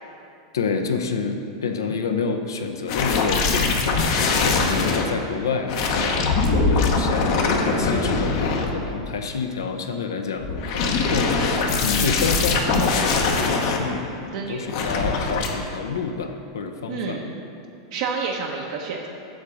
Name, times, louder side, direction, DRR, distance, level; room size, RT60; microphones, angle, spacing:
voice 1, 0.5-6.2 6.7-17.2, left 5 dB, 90° left, 5 dB, 0.6 m, -28 dB
sound 1, 2.9-5.1 5.7-9.1 10.4-13.8 14.7-15.5, left 4 dB, 60° left, 0.8 m, -22 dB
voice 2, 14.3-14.6 16.9-17.3 17.9-19.1, right 5 dB, 65° right, -1 dB, 0.7 m, -29 dB
7.3 x 3.6 x 6.1 m, 2.7 s
hypercardioid pair, 110°, 2 cm